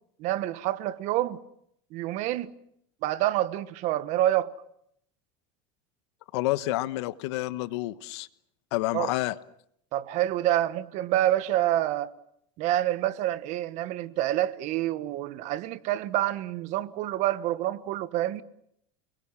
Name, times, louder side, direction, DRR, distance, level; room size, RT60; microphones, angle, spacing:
voice 1, 0.2-1.4 1.9-2.5 3.0-4.5 8.9-9.1 9.9-12.1 12.6-18.4, right 13 dB, 55° right, 1.4 m, -27 dB
voice 2, 6.3-8.3 8.7-9.4, left 18 dB, 85° left, 1.3 m, -29 dB
30.0 x 21.5 x 7.5 m
supercardioid pair, 135°, 14 cm